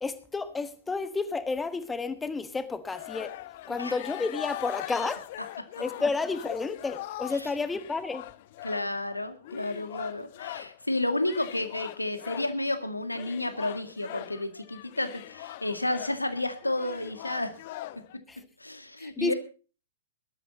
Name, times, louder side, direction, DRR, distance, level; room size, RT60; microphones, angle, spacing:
voice 1, 0.0-3.3 3.7-5.2 5.8-8.3 18.3-18.4 19.0-19.3, left 4 dB, 10° left, 13 dB, 1.3 m, -31 dB
sound 1, 2.9-10.8 11.2-12.6 13.1-18.2, left 15 dB, 45° left, 0.7 m, -41 dB
voice 2, 8.6-17.6 18.6-19.3, left 1 dB, 85° left, 9 dB, 2.1 m, -31 dB
19.0 x 13.0 x 4.1 m, 0.36 s
figure-of-eight pair, 110°, 0 cm